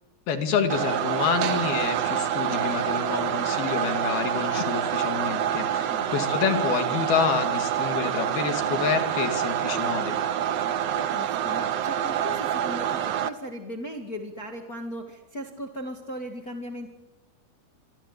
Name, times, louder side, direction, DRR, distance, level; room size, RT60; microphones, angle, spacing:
voice 1, 0.3-10.2, left 7 dB, 75° left, 7 dB, 4.1 m, -28 dB
sound 1, 0.7-13.3, right 9 dB, 85° right, 1.4 m, -27 dB
voice 2, 5.8-6.3 10.9-16.9, equal, 30° left, 3 dB, 1.9 m, -38 dB
26.5 x 24.0 x 8.3 m, 1.1 s
omnidirectional pair, 4.5 m